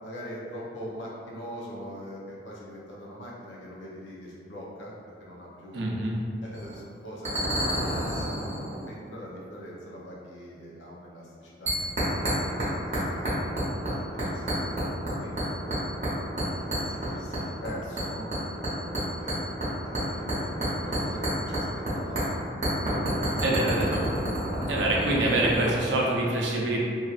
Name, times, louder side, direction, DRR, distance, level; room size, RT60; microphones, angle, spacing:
voice 1, 0.0-4.9 5.2-5.8 6.4-8.4 8.8-13.3 13.9-16.0 16.5-19.3 19.8-22.5 22.9-24.0, equal, 85° left, -4 dB, 0.6 m, -42 dB
voice 2, 5.7-6.2 23.4-24.0 24.7-26.8, right 1 dB, 75° right, -3 dB, 0.5 m, -25 dB
sound 1, 6.5-6.8 7.2-8.9 11.7-12.7 12.9-13.9 14.2-15.1 15.4-16.1 16.4-17.7 18.0-21.9 22.2-22.3 22.6-25.7, right 1 dB, 40° right, 0.8 m, -28 dB
2.7 x 2.4 x 2.4 m, 2.2 s
head